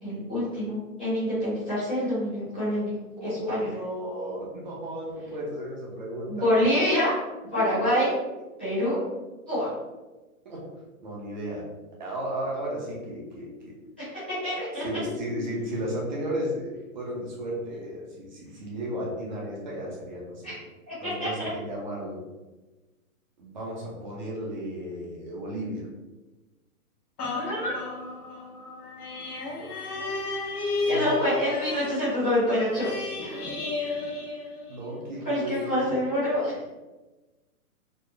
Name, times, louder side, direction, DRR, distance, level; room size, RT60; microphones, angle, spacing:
voice 1, 0.0-2.9 3.2-3.6 6.3-7.1 7.5-8.1 8.6-9.0 9.5-9.7 14.4-14.8 20.4-20.5 20.9-21.0 21.2-21.5 27.2-27.7 30.9-32.9 33.2-33.4 35.2-36.6, left 1 dB, 5° left, -18 dB, 0.5 m, -26 dB
voice 2, 3.2-6.6 7.5-7.7 10.4-10.6 11.0-11.6 12.0-13.8 14.8-20.6 21.0-22.2 23.4-25.9 30.7-31.3 34.7-35.8, equal, 30° right, -3 dB, 0.7 m, -34 dB
sound 1, 27.2-35.0 35.5-35.6, left 3 dB, 90° left, 1.2 m, -33 dB
4.2 x 2.0 x 3.2 m, 1.1 s
hypercardioid pair, 175°, 44 cm